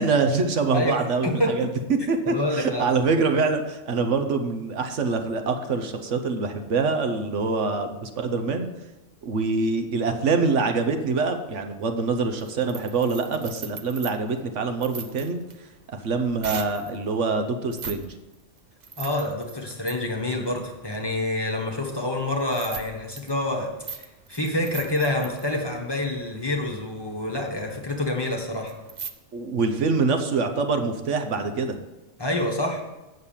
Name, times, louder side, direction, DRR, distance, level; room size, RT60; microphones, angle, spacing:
voice 1, 0.0-1.7 2.1-8.7 9.2-15.4 16.0-18.1 29.3-31.8, right 4 dB, 75° right, 7 dB, 1.2 m, -25 dB
voice 2, 0.7-1.7 2.3-2.8 19.0-28.7 32.2-32.8, left 1 dB, 20° left, -1 dB, 1.3 m, -27 dB
sound 1, 11.9-17.0 17.6-18.1 18.3-29.1, right 6 dB, 45° right, 0.7 m, -41 dB
8.4 x 6.5 x 7.2 m, 1.1 s
omnidirectional pair, 1.3 m